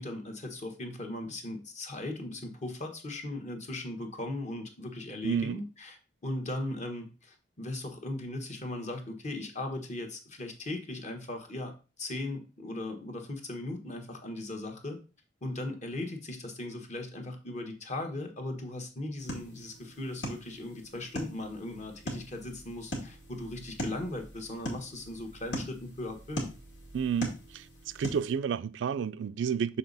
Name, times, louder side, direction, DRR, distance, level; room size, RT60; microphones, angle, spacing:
voice 1, 0.0-15.0 15.4-26.5, left 2 dB, 40° left, 1.3 m, -38 dB
voice 2, 5.2-5.6 26.9-27.6 27.9-29.8, right 7 dB, 80° right, 0.3 m, -30 dB
sound 1, 19.2-28.3, equal, 80° left, 2.2 m, -41 dB
6.7 x 4.1 x 4.0 m
head